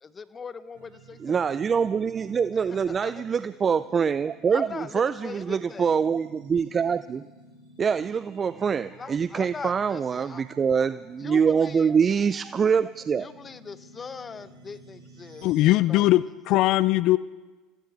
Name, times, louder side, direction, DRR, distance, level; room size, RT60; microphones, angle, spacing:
voice 1, 0.0-1.3 2.9-3.2 4.5-5.9 9.0-10.4 11.2-11.9 13.2-16.0, left 5 dB, 30° left, 14 dB, 0.9 m, -41 dB
sound 1, 0.7-15.6, right 3 dB, 85° right, 5.9 m, -53 dB
voice 2, 1.2-7.3 7.8-13.3, right 6 dB, 35° right, 14 dB, 0.4 m, -24 dB
voice 3, 15.4-17.2, left 16 dB, 60° left, 17 dB, 0.4 m, -20 dB
24.5 x 15.5 x 3.4 m, 1.2 s
hypercardioid pair, 80°, 0 cm